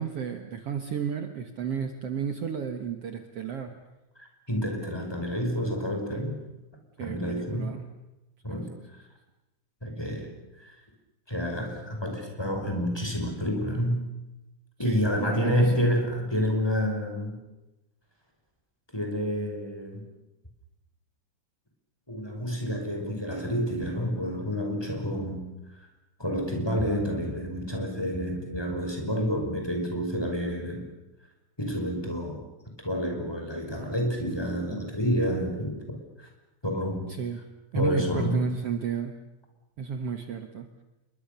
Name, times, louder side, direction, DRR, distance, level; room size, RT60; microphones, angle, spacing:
voice 1, 0.0-3.8 7.0-7.9 8.5-8.6 14.8-15.9 37.1-37.4 37.7-39.2 39.8-40.7, right 7 dB, 55° right, 7 dB, 2.3 m, -32 dB
voice 2, 4.2-6.4 7.0-7.7 8.4-8.7 9.8-10.8 11.3-14.0 14.8-17.4 18.9-20.0 22.1-25.5 25.8-25.9 26.2-30.9 31.6-32.4 32.8-36.3 36.6-37.0 37.7-38.4, equal, 5° left, 2 dB, 5.5 m, -29 dB
28.5 x 23.0 x 6.9 m, 0.97 s
omnidirectional pair, 3.4 m